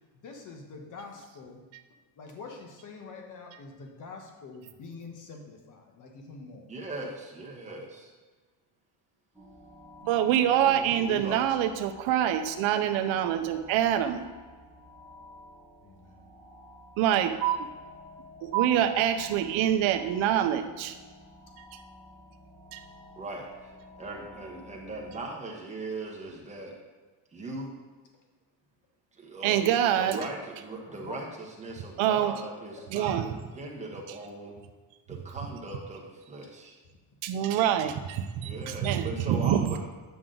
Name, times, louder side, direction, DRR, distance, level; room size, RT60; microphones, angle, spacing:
voice 1, 0.1-1.6 2.2-6.7 11.2-11.4 15.8-16.3 30.9-31.3, left 4 dB, 40° left, 3 dB, 1.2 m, -45 dB
voice 2, 6.7-8.1 10.6-11.5 23.2-23.7 24.0-26.7 27.3-27.7 29.1-34.6 35.1-36.8 38.4-39.6, right 2 dB, 15° right, -2 dB, 1.3 m, -39 dB
sound 1, 9.3-25.2, left 2 dB, 5° left, 1.4 m, -51 dB
voice 3, 10.0-14.3 17.0-17.7 18.4-21.0 21.7-21.8 22.7-22.8 29.4-30.2 32.0-32.3 32.9-33.3 37.2-39.8, right 10 dB, 70° right, 8 dB, 0.8 m, -25 dB
9.4 x 6.1 x 3.9 m, 1.3 s
cardioid pair, 165°, 49 cm